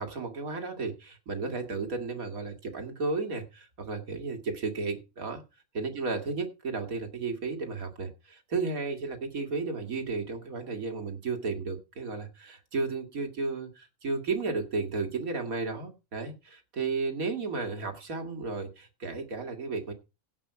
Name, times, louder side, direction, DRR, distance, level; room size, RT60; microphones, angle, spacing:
voice 1, 0.0-5.4 5.7-19.9, right 4 dB, 85° right, 2.5 m, -33 dB
16.5 x 5.6 x 4.7 m
omnidirectional pair, 1.4 m